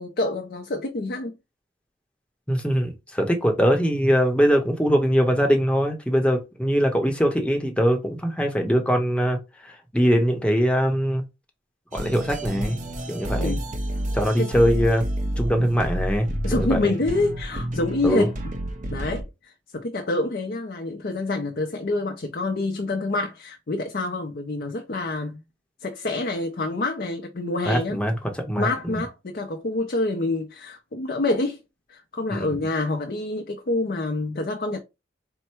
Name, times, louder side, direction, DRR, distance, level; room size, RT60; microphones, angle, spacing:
voice 1, 0.0-1.3 13.3-13.6 14.4-14.5 16.4-18.3 18.9-25.4 25.8-28.0 28.6-31.6 31.9-34.8, left 2 dB, 55° left, 0.5 m, -27 dB
voice 2, 2.5-9.4 9.6-11.2 11.9-12.8 13.1-13.5 14.1-15.0 15.4-16.8 18.0-18.3 27.7-28.1 28.5-29.0 32.3-32.6, equal, 5° left, 0.8 m, -22 dB
sound 1, 11.9-19.2, right 1 dB, 45° right, 0.6 m, -29 dB
4.4 x 2.1 x 4.4 m
head